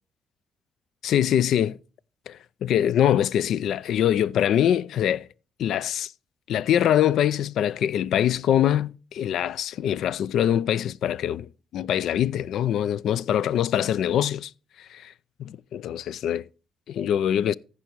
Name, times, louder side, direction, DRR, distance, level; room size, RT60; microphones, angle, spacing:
voice 1, 1.0-1.8 2.3-5.3 5.6-6.1 6.5-14.5 14.9-15.1 15.4-16.5 16.9-17.5, left 10 dB, 75° left, 0.4 m, -23 dB
14.5 x 5.0 x 4.5 m
cardioid pair, 90°, 0 cm